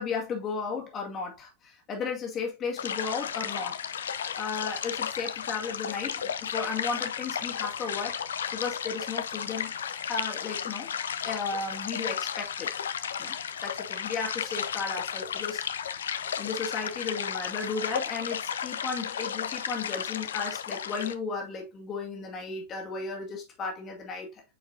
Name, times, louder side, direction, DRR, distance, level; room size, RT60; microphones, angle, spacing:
voice 1, 0.0-8.2 8.5-9.8 10.1-10.9 11.2-12.8 13.2-13.4 13.6-16.1 16.4-24.4, left 5 dB, 30° left, 1.9 m, -35 dB
sound 1, 2.8-21.1, left 8 dB, 65° left, 0.5 m, -34 dB
9.0 x 4.6 x 2.7 m
figure-of-eight pair, 90°, 0 cm